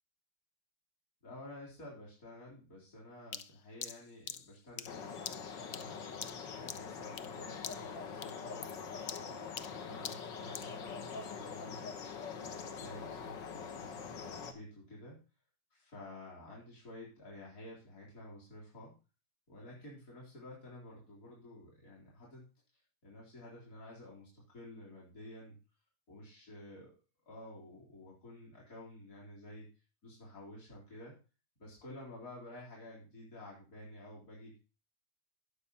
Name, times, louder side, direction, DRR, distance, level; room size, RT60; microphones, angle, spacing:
voice 1, 1.2-6.0 6.5-12.1 12.4-15.2 15.7-18.9 19.5-25.6 26.1-26.9 27.3-29.7 30.0-31.2 31.6-34.6, left 1 dB, 40° left, -5 dB, 4.3 m, -51 dB
sound 1, 3.3-7.4 7.6-8.0 8.2-10.8, left 9 dB, 90° left, 0.7 m, -45 dB
sound 2, 4.9-14.5, left 6 dB, 60° left, 1.8 m, -44 dB
16.5 x 6.5 x 4.2 m, 0.33 s
omnidirectional pair, 2.3 m